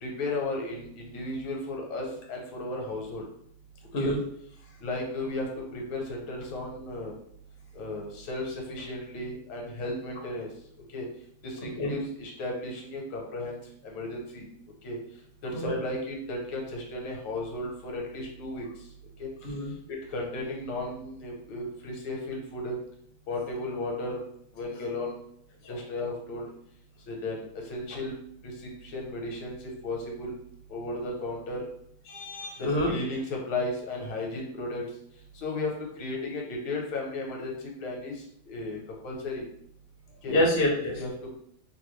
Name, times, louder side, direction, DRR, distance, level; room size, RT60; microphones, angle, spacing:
voice 1, 0.0-3.3 4.0-4.1 4.8-7.2 7.7-10.5 10.9-11.1 11.4-13.6 13.8-14.4 14.8-15.0 15.4-18.6 19.2-19.3 19.9-22.8 23.3-24.2 24.5-25.2 25.7-26.5 27.1-28.1 28.4-30.3 30.7-31.7 32.6-34.8 35.3-39.4 40.2-40.4 41.0-41.1, left 2 dB, 85° left, 0 dB, 1.6 m, -34 dB
voice 2, 32.1-32.9 40.3-41.0, left 1 dB, 60° left, -1 dB, 0.7 m, -26 dB
3.3 x 2.3 x 3.0 m, 0.70 s
omnidirectional pair, 2.1 m